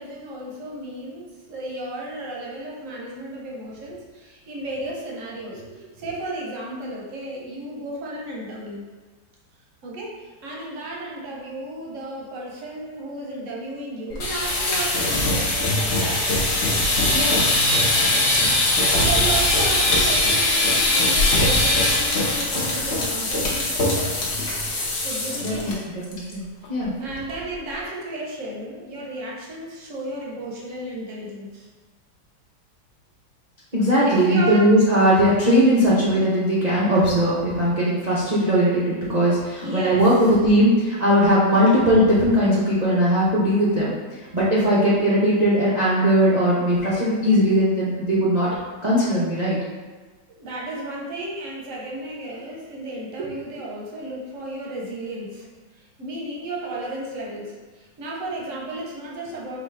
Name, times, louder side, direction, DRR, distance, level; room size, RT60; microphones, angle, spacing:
voice 1, 0.0-8.8 9.8-16.2 18.4-24.0 25.0-25.9 26.6-26.7 27.0-31.7 34.0-34.7 39.5-40.2 50.3-55.5 55.7-59.6, right 1 dB, 55° right, -3 dB, 0.9 m, -34 dB
sound 1, 14.1-25.7 26.0-26.3 26.6-26.7 27.1-27.5, left 1 dB, 55° left, 0.7 m, -21 dB
voice 2, 25.4-25.7 26.1-26.9 33.7-43.9 44.3-48.5 48.8-49.6, equal, 80° right, -9 dB, 0.3 m, -19 dB
4.9 x 2.7 x 3.3 m, 1.4 s
omnidirectional pair, 2.1 m